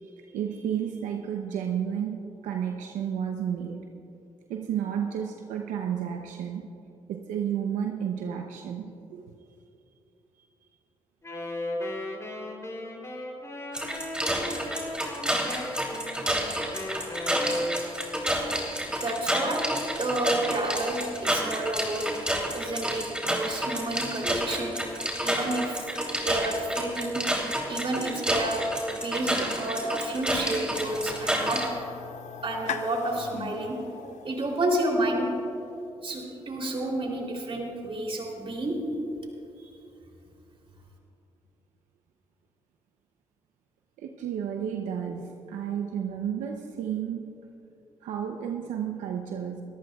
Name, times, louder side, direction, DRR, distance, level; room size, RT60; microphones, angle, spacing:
voice 1, 0.0-3.9 4.5-6.7 7.1-9.3 44.0-47.4 48.0-49.6, right 8 dB, 85° right, 3 dB, 0.7 m, -32 dB
Wind instrument woodwind instrument, 11.2-18.2, left 1 dB, 25° left, 3.3 m, -35 dB
sound 1, 13.7-31.7, equal, 5° right, 3.1 m, -29 dB
voice 2, 19.0-19.6 20.0-22.1 22.5-24.8 25.2-25.9 26.2-27.2 27.7-31.6 32.4-33.8 34.2-35.3 36.0-38.8 39.6-39.7, right 1 dB, 45° right, 0 dB, 3.3 m, -30 dB
sound 2, 30.7-35.7, left 8 dB, 70° left, 0.7 m, -41 dB
24.0 x 14.0 x 2.4 m, 2.8 s
supercardioid pair, 55°, 13 cm